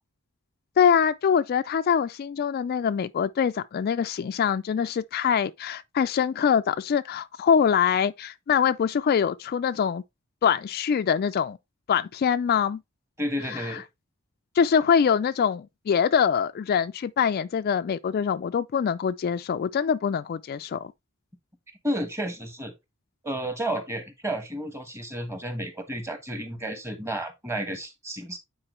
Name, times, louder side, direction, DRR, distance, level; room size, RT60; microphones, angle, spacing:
voice 1, 0.8-10.0 10.4-11.6 11.9-12.8 13.5-13.8 14.6-20.9, left 7 dB, 45° left, 0.3 m, -24 dB
voice 2, 13.2-13.8 21.8-22.7 23.2-28.4, right 1 dB, 10° right, 1.3 m, -31 dB
8.8 x 4.4 x 3.1 m
head